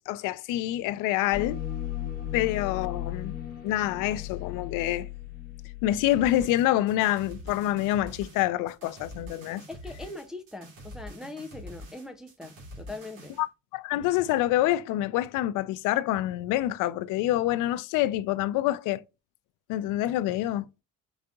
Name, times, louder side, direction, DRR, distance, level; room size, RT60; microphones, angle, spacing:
voice 1, 0.1-1.6 2.3-3.3 3.6-5.1 5.8-9.6 13.4-13.5 13.7-19.0 19.7-20.7, left 14 dB, 85° left, 0.5 m, -26 dB
sound 1, 1.3-6.6, left 12 dB, 30° left, 1.3 m, -36 dB
sound 2, 6.1-13.4, equal, 85° right, 2.6 m, -45 dB
voice 2, 9.7-13.4, left 2 dB, ahead, 0.4 m, -41 dB
4.9 x 3.8 x 2.3 m
cardioid pair, 150°, 31 cm